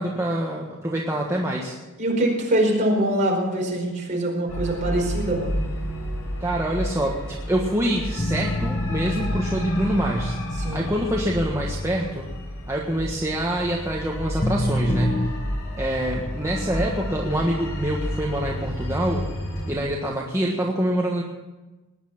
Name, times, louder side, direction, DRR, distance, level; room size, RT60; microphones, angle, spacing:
voice 1, 0.0-1.8 6.4-10.4 10.7-12.3 12.7-15.3 15.8-19.3 19.7-21.2, right 1 dB, 15° right, -2 dB, 1.4 m, -25 dB
voice 2, 2.0-5.6 10.5-10.9, right 1 dB, 35° right, -1 dB, 4.8 m, -23 dB
sound 1, 4.5-19.8, equal, 85° left, 4.5 m, -31 dB
sound 2, 8.2-13.3 14.4-15.3, left 1 dB, 25° left, 1.0 m, -29 dB
19.5 x 10.0 x 5.9 m, 1.1 s
head